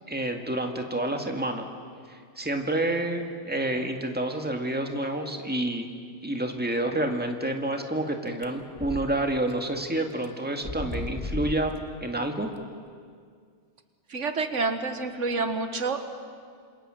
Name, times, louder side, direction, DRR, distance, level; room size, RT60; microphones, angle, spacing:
voice 1, 0.1-1.7 2.1-5.9 6.2-12.5, right 1 dB, 10° right, 4 dB, 2.0 m, -29 dB
sound 1, 8.4-9.1 9.5-9.6 10.2-10.3 10.6-11.8, left 1 dB, 25° left, 1.4 m, -34 dB
voice 2, 14.1-16.0, right 3 dB, 90° right, 8 dB, 1.9 m, -28 dB
27.0 x 27.0 x 7.7 m, 2.1 s
omnidirectional pair, 1.2 m